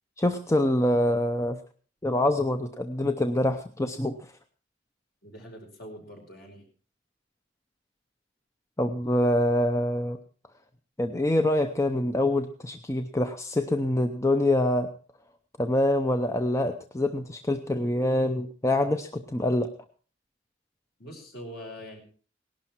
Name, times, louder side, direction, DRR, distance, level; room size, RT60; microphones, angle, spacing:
voice 1, 0.2-1.6 2.0-4.3 8.8-10.2 11.0-14.9 15.6-19.7, left 1 dB, 15° left, 7 dB, 0.7 m, -25 dB
voice 2, 5.2-6.6 21.0-22.0, equal, 55° left, 2 dB, 4.9 m, -43 dB
18.0 x 11.5 x 4.5 m, 0.40 s
head